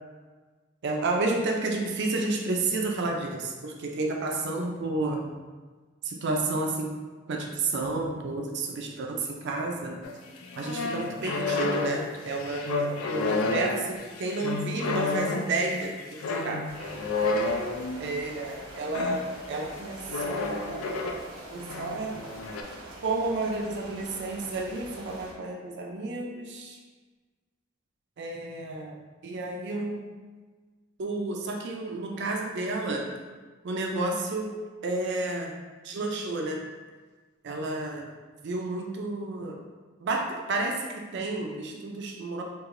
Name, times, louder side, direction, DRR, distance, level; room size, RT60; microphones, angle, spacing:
voice 1, 0.8-5.2 6.0-6.9 7.3-10.0 10.6-16.6 18.0-19.2 19.5-22.2 23.0-26.8 28.2-30.0 31.0-33.1 33.6-34.5 34.8-35.5 35.8-36.6 37.4-38.1 38.4-39.6 40.0-42.4, right 2 dB, 55° right, 1 dB, 0.4 m, -31 dB
sound 1, 10.0-18.2 18.9-19.3 20.1-21.2 21.6-22.6, left 3 dB, 80° left, 0.4 m, -30 dB
sound 2, 16.7-25.3, right 1 dB, 80° right, 0.8 m, -45 dB
4.7 x 2.8 x 2.5 m, 1.4 s
head